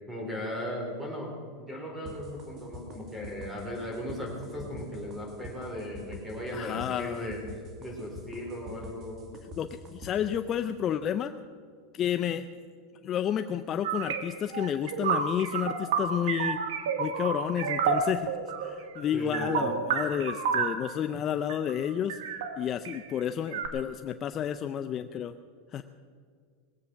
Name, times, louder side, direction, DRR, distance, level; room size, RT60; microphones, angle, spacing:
voice 1, 0.1-7.4 7.8-9.2 19.1-19.7, left 1 dB, 5° right, -1 dB, 4.3 m, -37 dB
sound 1, 2.1-10.1, left 1 dB, 30° right, 2.4 m, -45 dB
voice 2, 6.5-7.3 9.6-11.3 11.9-12.5 13.0-16.6 17.0-18.3 18.6-22.2 22.6-25.3 25.7-25.8, left 9 dB, 30° left, 8 dB, 0.5 m, -31 dB
sound 2, 13.8-20.9 21.5-21.7 22.1-23.0 23.5-23.7, right 6 dB, 85° right, 1.6 m, -30 dB
20.5 x 8.3 x 6.3 m, 2.1 s
supercardioid pair, 140°, 0 cm